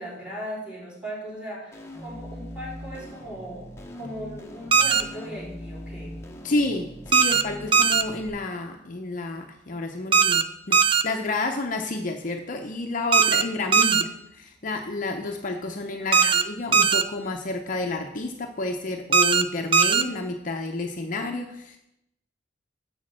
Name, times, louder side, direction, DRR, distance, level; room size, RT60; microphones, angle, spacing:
voice 1, 0.0-3.7 3.9-6.1 13.8-14.1 16.0-16.6, equal, 5° right, -5 dB, 3.9 m, -38 dB
sound 1, 1.7-8.3, left 1 dB, 15° left, 1.0 m, -41 dB
sound 2, 4.7-5.0 7.1-7.4 7.7-8.0 10.1-10.4 10.7-11.0 13.1-13.4 13.7-14.0 16.1-16.4 16.7-17.0 19.1-19.4 19.7-20.0, right 6 dB, 25° right, 0.4 m, -18 dB
voice 2, 6.4-14.1 14.4-21.8, left 2 dB, 45° left, 3 dB, 0.7 m, -30 dB
6.9 x 6.3 x 7.5 m, 0.83 s
head